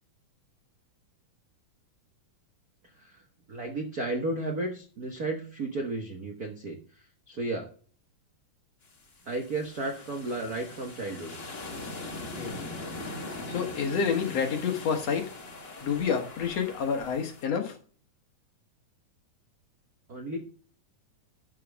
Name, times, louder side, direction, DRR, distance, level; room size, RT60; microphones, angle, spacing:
voice 1, 3.5-6.8 7.3-7.7 9.2-11.3 20.1-20.4, right 2 dB, 75° right, 2 dB, 0.8 m, -33 dB
sound 1, 8.8-17.5, left 2 dB, 80° left, 0.5 m, -41 dB
voice 2, 13.5-15.3 15.8-17.7, left 6 dB, 60° left, 5 dB, 2.1 m, -28 dB
12.0 x 6.2 x 3.5 m, 0.42 s
omnidirectional pair, 3.8 m